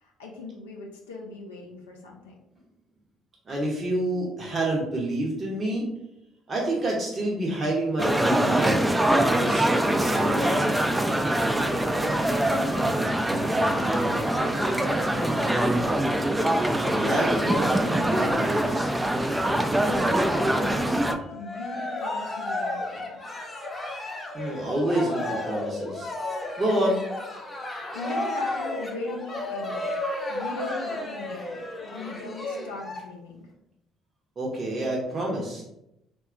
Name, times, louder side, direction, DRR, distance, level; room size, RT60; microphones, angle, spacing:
voice 1, 0.0-2.3 11.7-15.5 19.8-20.9 21.3-23.2 27.9-29.9 30.3-33.5, left 2 dB, 85° left, -1 dB, 0.4 m, -39 dB
voice 2, 3.5-5.9 6.5-8.8 9.2-10.5 16.9-18.9 24.3-26.1 26.6-27.0 34.4-35.6, right 1 dB, 40° right, -3 dB, 0.7 m, -28 dB
sound 1, 8.0-21.1, right 1 dB, 10° right, 0.3 m, -23 dB
Cheering, 21.2-33.0, left 2 dB, 25° left, 0.6 m, -33 dB
2.7 x 2.2 x 2.4 m, 0.83 s
hypercardioid pair, 55°, 0 cm